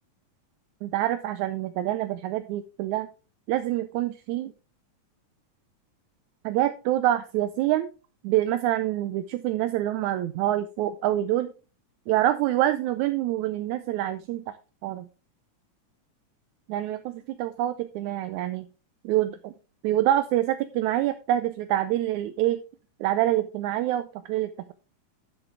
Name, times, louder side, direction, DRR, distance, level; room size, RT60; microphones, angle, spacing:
voice 1, 0.8-3.1 3.5-4.5 6.4-7.9 8.2-11.5 12.1-14.5 14.8-15.1 16.7-18.7 19.0-19.5 19.8-22.6 23.0-24.7, right 13 dB, 80° right, 10 dB, 2.0 m, -26 dB
11.5 x 6.7 x 3.4 m, 0.33 s
omnidirectional pair, 3.5 m